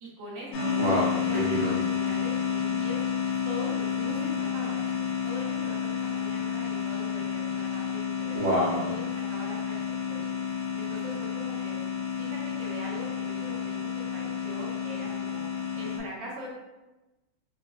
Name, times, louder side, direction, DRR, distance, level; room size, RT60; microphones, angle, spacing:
voice 1, 0.0-3.0 3.5-8.4 8.8-9.8 10.1-10.3 10.7-11.8 12.2-13.8 14.1-15.5 15.7-16.5, equal, 70° right, -5 dB, 1.4 m, -42 dB
sound 1, 0.5-16.0, left 7 dB, 80° left, 1.5 m, -30 dB
voice 2, 0.8-1.7 8.3-8.8, right 1 dB, 30° right, -9 dB, 0.9 m, -27 dB
4.2 x 2.2 x 2.3 m, 1.1 s
omnidirectional pair, 2.1 m